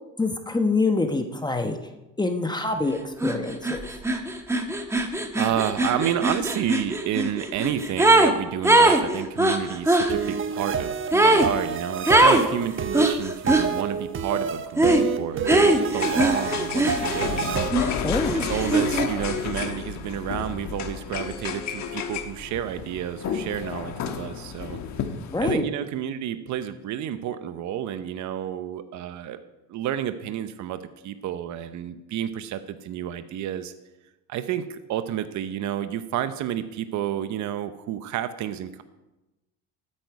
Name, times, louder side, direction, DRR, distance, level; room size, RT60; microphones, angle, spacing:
voice 1, 0.2-1.8 2.2-3.9 18.0-18.3 25.3-25.6, left 3 dB, 10° left, 5 dB, 1.1 m, -25 dB
sound 1, 3.2-3.4 3.6-8.3 8.6-10.1 11.1-11.5 12.1-12.5 12.9-13.7 14.8-15.1 15.5-17.3 17.7-19.1, right 1 dB, 10° right, 1.3 m, -21 dB
voice 2, 5.4-17.7 18.3-24.8 25.4-29.4 29.7-33.7 34.3-38.8, right 10 dB, 55° right, 11 dB, 0.8 m, -30 dB
sound 2, 10.1-17.7, right 6 dB, 35° right, 1.0 m, -28 dB
sound 3, 15.9-25.5, left 7 dB, 55° left, 1.3 m, -31 dB
13.0 x 8.7 x 4.8 m, 1.0 s
supercardioid pair, 100°, 34 cm